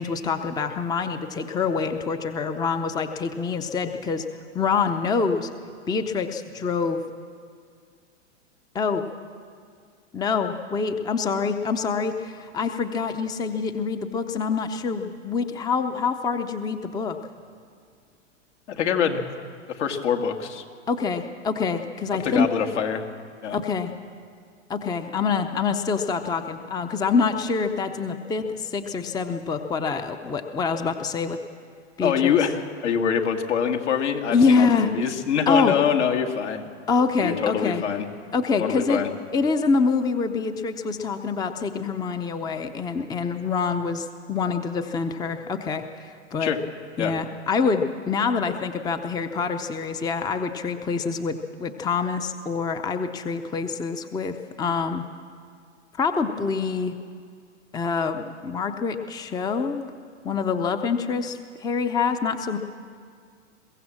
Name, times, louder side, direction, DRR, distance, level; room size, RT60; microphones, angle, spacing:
voice 1, 0.0-4.3 4.5-5.5 5.9-7.0 8.7-9.0 10.1-17.2 20.9-22.5 23.5-23.9 24.7-31.4 32.0-32.3 34.3-34.9 35.5-35.7 36.9-37.8 38.3-39.0 39.3-46.5 47.0-55.0 56.0-56.9 57.7-59.9 60.2-62.6, left 5 dB, 10° left, 8 dB, 0.6 m, -25 dB
voice 2, 18.7-19.3 19.7-20.6 22.1-23.0 23.4-23.6 32.0-36.7 37.2-38.1 38.6-39.1 46.4-46.6 47.0-47.1, left 7 dB, 70° left, 3 dB, 2.1 m, -24 dB
22.5 x 15.5 x 7.4 m, 2.2 s
hypercardioid pair, 120°, 36 cm